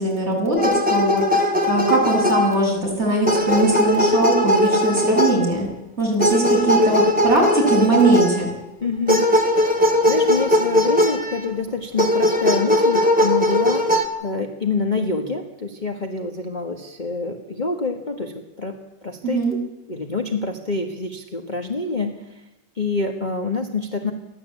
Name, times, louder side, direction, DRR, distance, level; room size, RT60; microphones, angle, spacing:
voice 1, 0.0-5.7 6.0-8.5 19.2-19.5, right 2 dB, 35° right, -2 dB, 7.0 m, -20 dB
sound 1, 0.6-2.9 3.3-5.6 6.2-8.5 9.1-11.5 12.0-14.0, left 1 dB, 5° right, 2.3 m, -19 dB
voice 2, 8.8-9.3 9.5-13.9 14.2-18.8 19.0-19.6 19.9-22.4 22.7-24.1, left 3 dB, 25° left, 2 dB, 1.6 m, -26 dB
29.5 x 12.0 x 8.4 m, 0.98 s
omnidirectional pair, 2.0 m